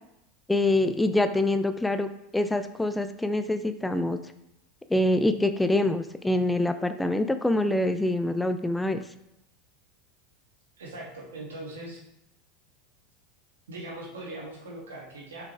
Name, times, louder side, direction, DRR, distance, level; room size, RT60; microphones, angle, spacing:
voice 1, 0.5-4.2 4.9-9.0, left 1 dB, 10° left, 10 dB, 0.5 m, -25 dB
voice 2, 10.8-12.0 13.7-15.5, right 2 dB, 90° right, -3 dB, 2.4 m, -40 dB
6.9 x 5.8 x 3.5 m, 0.81 s
hypercardioid pair, 95°, 0 cm